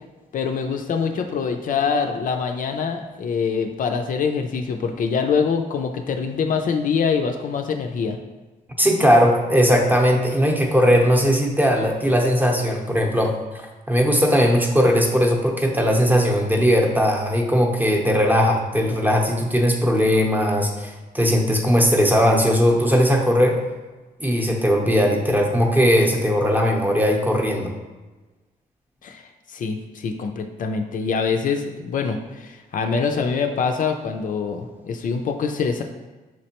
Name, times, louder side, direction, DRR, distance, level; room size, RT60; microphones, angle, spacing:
voice 1, 0.3-8.2 29.0-35.8, left 5 dB, 55° left, 5 dB, 0.4 m, -24 dB
voice 2, 8.8-23.6 24.2-27.7, equal, 10° right, 1 dB, 0.7 m, -19 dB
5.9 x 3.1 x 2.9 m, 1.2 s
cardioid pair, 100°, 16 cm